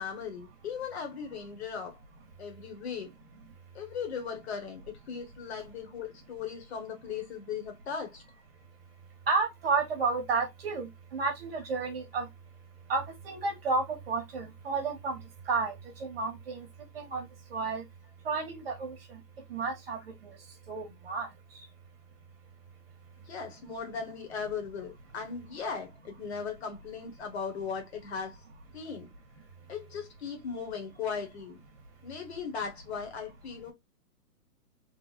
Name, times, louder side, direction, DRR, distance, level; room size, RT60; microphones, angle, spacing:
voice 1, 0.0-2.0 2.4-3.1 3.7-8.2 23.3-28.4 28.7-29.1 29.7-31.6 32.0-33.7, left 6 dB, 40° left, 1.3 m, -38 dB
voice 2, 9.3-12.3 12.9-15.2 15.5-15.7 16.0-16.6 16.9-17.3 17.5-17.8 18.2-19.0 19.5-20.0 20.7-21.3, right 4 dB, 35° right, 1.1 m, -31 dB
3.3 x 2.3 x 4.0 m
hypercardioid pair, 165°, 48 cm